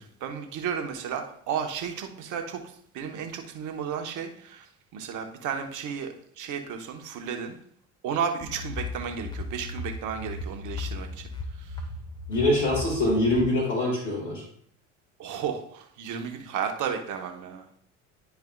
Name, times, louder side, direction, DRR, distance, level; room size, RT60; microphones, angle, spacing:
voice 1, 0.2-2.6 2.9-7.6 8.0-11.2 11.6-11.8 15.2-17.6, right 7 dB, 55° right, 4 dB, 1.3 m, -33 dB
sound 1, 8.4-13.4, left 3 dB, 10° left, 1.2 m, -36 dB
voice 2, 12.3-14.4, left 1 dB, 85° left, -5 dB, 2.1 m, -24 dB
10.5 x 4.7 x 2.4 m, 0.65 s
hypercardioid pair, 70°, 37 cm